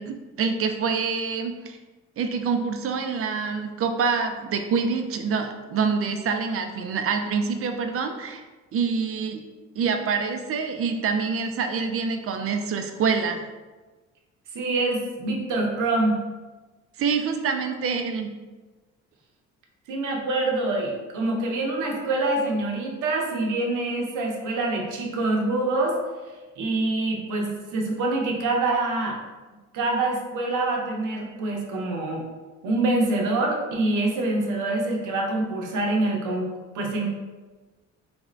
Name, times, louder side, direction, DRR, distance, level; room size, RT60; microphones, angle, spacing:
voice 1, 0.0-1.8 2.2-8.4 8.7-9.4 9.8-13.4 17.0-18.3, right 5 dB, 50° right, 6 dB, 0.4 m, -26 dB
voice 2, 14.5-16.2 19.9-26.0 26.6-29.2 29.7-32.2 32.6-36.5 36.7-37.1, right 2 dB, 80° right, 0 dB, 0.7 m, -25 dB
3.4 x 2.5 x 3.1 m, 1.2 s
cardioid pair, 90°, 30 cm